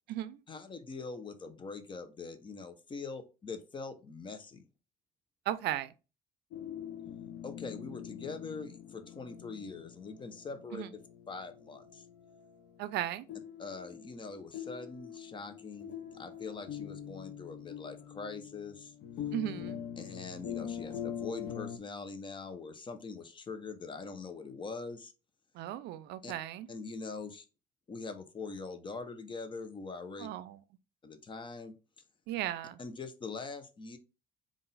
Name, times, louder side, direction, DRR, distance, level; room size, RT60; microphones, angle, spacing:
voice 1, 0.5-4.7 7.4-11.0 11.3-12.0 13.6-18.9 20.0-25.1 26.2-26.3 26.7-27.4 27.9-30.3 31.0-31.7 32.8-34.0, left 4 dB, 30° left, 0.7 m, -43 dB
voice 2, 5.5-5.9 10.7-10.9 12.8-13.2 19.3-19.8 25.6-26.7 30.2-30.5 32.3-32.8, right 13 dB, 80° right, 0.4 m, -36 dB
sound 1, 6.5-21.8, left 9 dB, 75° left, 0.7 m, -44 dB
3.8 x 2.5 x 4.0 m
cardioid pair, 110°, 17 cm